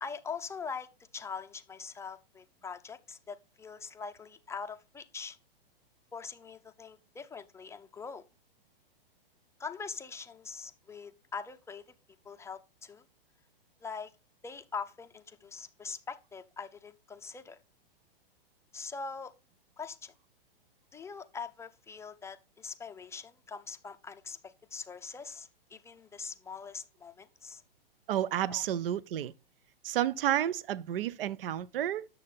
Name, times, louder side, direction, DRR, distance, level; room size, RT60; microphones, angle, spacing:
voice 1, 0.0-5.4 6.1-8.2 9.6-11.8 12.2-13.0 13.8-14.1 14.4-17.6 18.7-19.3 19.8-20.1 20.9-27.6 28.5-28.6, left 5 dB, 10° left, 0.5 m, -43 dB
voice 2, 28.1-29.3 29.8-32.1, right 11 dB, 70° right, 0.6 m, -31 dB
9.2 x 6.7 x 3.6 m
hypercardioid pair, 120°, 29 cm